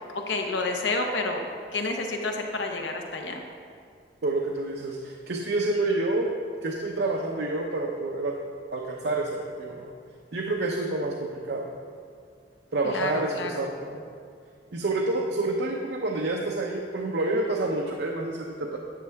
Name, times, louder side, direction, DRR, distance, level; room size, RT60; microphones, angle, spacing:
voice 1, 0.1-1.5 1.7-3.4 12.8-13.6, left 3 dB, 75° left, 3 dB, 0.8 m, -29 dB
voice 2, 4.2-6.3 6.6-8.3 8.7-9.9 10.3-11.7 12.7-14.0 14.7-18.8, right 2 dB, 65° right, 0 dB, 0.7 m, -28 dB
11.0 x 7.6 x 3.5 m, 2.2 s
head